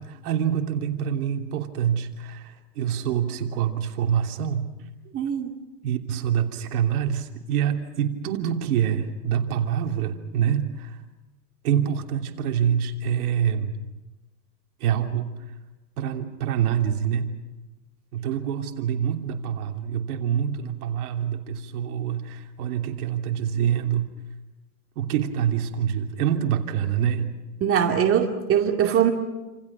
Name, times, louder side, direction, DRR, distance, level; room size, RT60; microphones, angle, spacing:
voice 1, 0.0-4.7 5.8-11.0 11.6-13.8 14.8-15.4 16.0-17.4 18.1-24.1 24.9-27.4, right 9 dB, 60° right, 4 dB, 3.2 m, -26 dB
voice 2, 5.1-5.5 27.6-29.1, right 9 dB, 25° right, 3 dB, 2.5 m, -21 dB
29.0 x 27.5 x 6.0 m, 1.1 s
hypercardioid pair, 130°, 49 cm